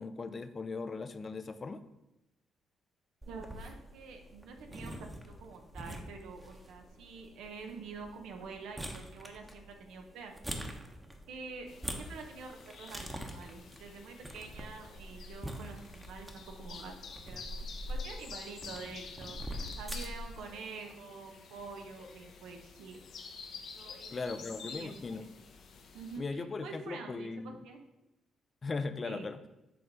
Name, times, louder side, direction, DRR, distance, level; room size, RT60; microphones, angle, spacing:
voice 1, 0.0-1.8 24.1-25.3 26.2-27.6 28.6-29.4, left 4 dB, 35° left, 11 dB, 0.5 m, -38 dB
sound 1, 3.2-20.4, equal, 10° right, 0.9 m, -45 dB
voice 2, 3.3-5.1 5.4-10.3 11.3-11.7 11.9-16.9 17.3-17.6 17.9-23.0 23.7-25.3 25.9-27.8 29.0-29.3, right 4 dB, 85° right, 4 dB, 0.8 m, -47 dB
sound 2, 11.7-26.2, left 5 dB, 65° left, 0.9 m, -50 dB
7.8 x 3.2 x 5.2 m, 0.96 s
cardioid pair, 90°, 0 cm